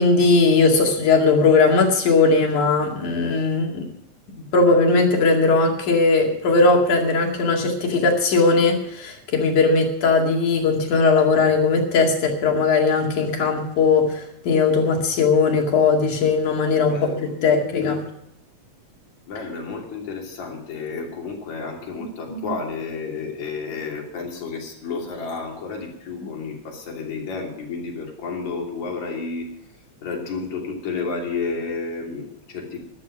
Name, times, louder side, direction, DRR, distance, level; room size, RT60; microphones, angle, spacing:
voice 1, 0.0-3.9 4.4-18.0 22.3-22.5, left 4 dB, 90° left, 1 dB, 3.8 m, -19 dB
voice 2, 16.8-17.4 19.3-29.5 30.0-32.8, left 4 dB, 70° left, 0 dB, 4.3 m, -31 dB
13.5 x 12.0 x 6.1 m, 0.77 s
omnidirectional pair, 3.4 m